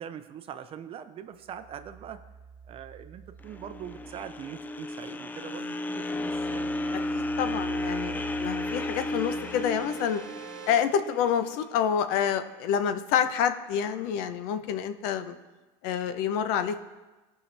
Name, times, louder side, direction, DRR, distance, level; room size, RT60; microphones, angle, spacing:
voice 1, 0.0-2.2 2.7-6.7, right 9 dB, 35° right, 10 dB, 0.6 m, -42 dB
sound 1, 1.4-5.2 5.6-10.2, right 9 dB, 80° right, 0.7 m, -47 dB
sound 2, 3.4-11.7, left 1 dB, 10° left, 0.3 m, -33 dB
sound 3, 6.1-10.8, right 7 dB, 55° right, 1.3 m, -48 dB
voice 2, 7.1-10.2 10.7-15.4 15.8-16.8, left 8 dB, 65° left, 10 dB, 0.7 m, -28 dB
16.5 x 5.7 x 3.3 m, 1.2 s
supercardioid pair, 120°, 16 cm